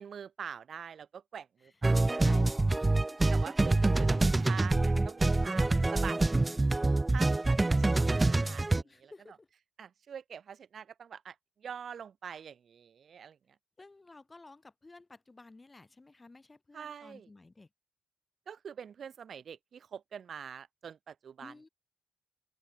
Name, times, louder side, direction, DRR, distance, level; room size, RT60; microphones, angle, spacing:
voice 1, 0.0-2.4 3.3-6.2 7.1-9.1 9.8-13.4 16.7-17.3 18.5-21.5, right 7 dB, 65° right, 1.5 m, -45 dB
sound 1, 1.8-8.8, right 2 dB, 25° right, 0.3 m, -26 dB
voice 2, 2.2-3.3 5.4-7.0 8.8-9.5 13.8-17.7 21.4-21.7, left 3 dB, 25° left, 4.6 m, -54 dB
supercardioid pair, 55°, 0 cm